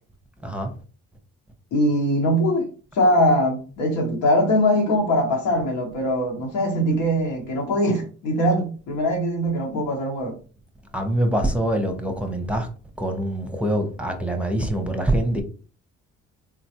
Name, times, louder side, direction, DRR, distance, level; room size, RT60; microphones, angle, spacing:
voice 1, 1.7-2.7 2.9-10.4, equal, 80° left, 1.2 m, -21 dB
voice 2, 10.9-12.7 13.0-15.4, right 1 dB, 5° right, 0.8 m, -24 dB
3.7 x 2.2 x 2.9 m
supercardioid pair, 60°, 32 cm